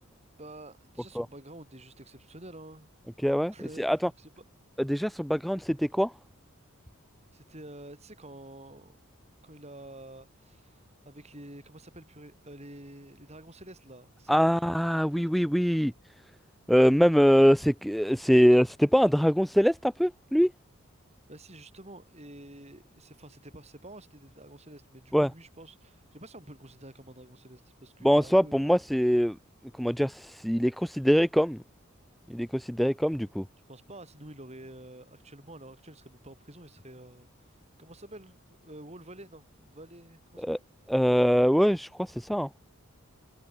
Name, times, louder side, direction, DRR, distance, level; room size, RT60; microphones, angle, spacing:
voice 1, 0.4-2.9 3.5-4.4 7.3-9.0 9.4-14.8 15.0-15.3 21.3-28.7 33.7-40.6, right 1 dB, 30° right, 7.9 m, -49 dB
voice 2, 3.2-4.0 4.8-6.1 14.3-15.9 16.7-20.5 25.1-25.3 28.0-29.4 29.8-31.6 32.3-33.4 40.4-40.6 40.9-42.5, equal, ahead, 0.5 m, -23 dB
head